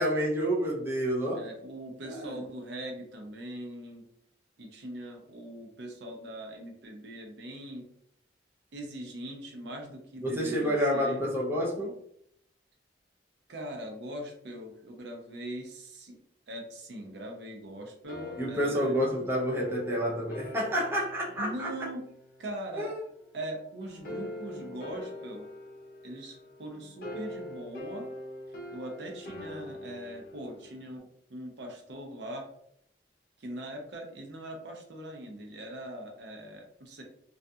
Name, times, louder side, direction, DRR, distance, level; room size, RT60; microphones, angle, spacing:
voice 1, 0.0-1.4 2.0-2.4 10.2-12.0 18.4-21.7 22.8-22.9, equal, 15° right, -4 dB, 0.4 m, -29 dB
voice 2, 1.3-4.1 4.6-7.9 8.7-11.2 13.5-16.2 16.5-19.0 21.4-22.0 22.4-22.9 23.3-25.5 26.0-28.1 28.7-32.5 33.4-37.0, right 1 dB, 70° right, 2 dB, 0.5 m, -41 dB
sound 1, 18.0-22.7 23.8-31.0, left 1 dB, 55° left, 0.5 m, -43 dB
2.4 x 2.2 x 2.6 m, 0.70 s
head